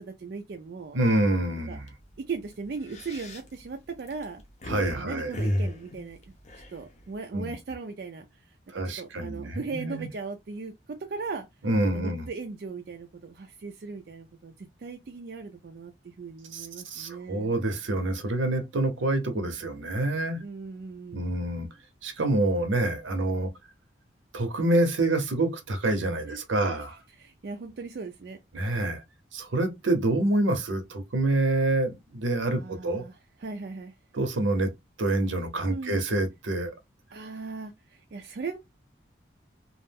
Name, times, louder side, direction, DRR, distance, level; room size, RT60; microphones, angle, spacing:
voice 1, 0.0-1.0 1.7-1.8 2.2-4.4 4.9-6.2 6.7-8.6 8.8-10.7 11.0-11.5 11.9-17.5 20.4-21.3 26.3-26.4 26.7-26.8 27.1-28.4 32.5-33.9 35.7-36.0 37.1-38.6, right 4 dB, 55° right, 0.4 m, -38 dB
voice 2, 0.9-1.8 4.7-5.3 7.3-7.5 8.7-10.1 11.6-12.3 16.5-20.4 21.1-21.7 22.0-23.5 24.3-27.0 28.5-29.0 29.3-33.0 34.1-34.7 35.0-36.7, right 2 dB, 80° right, 0.7 m, -27 dB
sound 1, 1.0-1.3 1.7-1.9 2.6-4.9 5.3-7.1, equal, 35° left, 0.6 m, -33 dB
2.4 x 2.1 x 3.3 m
head